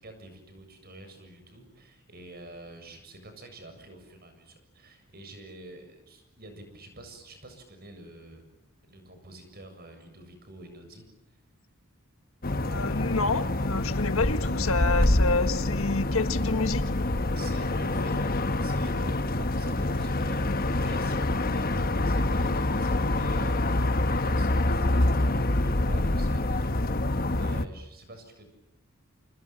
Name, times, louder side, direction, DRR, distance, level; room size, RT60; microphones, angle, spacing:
voice 1, 0.0-8.4 8.9-11.1 17.3-28.5, right 1 dB, 45° right, 7 dB, 7.5 m, -47 dB
sound 1, 12.4-27.7, left 2 dB, 45° left, 1.2 m, -26 dB
voice 2, 12.6-16.8, left 3 dB, 70° left, 10 dB, 1.7 m, -28 dB
29.0 x 27.5 x 7.6 m, 0.86 s
head